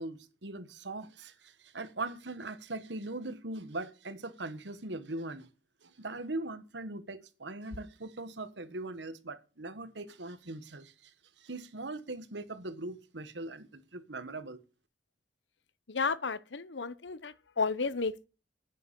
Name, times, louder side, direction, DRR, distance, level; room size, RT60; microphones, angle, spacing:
voice 1, 0.0-5.5 5.8-14.6, right 2 dB, 75° right, 1.5 m, -40 dB
voice 2, 15.9-18.3, left 4 dB, 80° left, 0.9 m, -33 dB
9.7 x 9.2 x 7.5 m
head